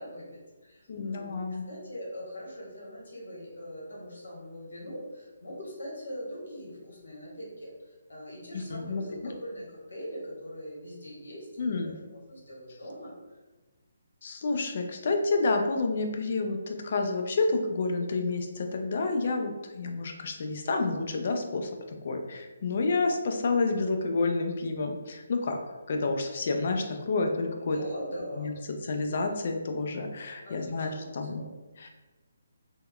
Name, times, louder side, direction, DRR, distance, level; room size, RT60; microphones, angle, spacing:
voice 1, 0.0-1.3 1.7-13.1 27.7-28.5 30.4-31.4, equal, 80° left, -4 dB, 1.2 m, -42 dB
voice 2, 0.9-1.6 8.5-9.0 11.6-11.9 14.2-25.6 25.9-27.8 28.4-28.5 28.8-31.4 31.8-31.9, left 3 dB, 45° left, 4 dB, 0.3 m, -29 dB
3.4 x 2.1 x 2.3 m, 1.2 s
hypercardioid pair, 170°, 0 cm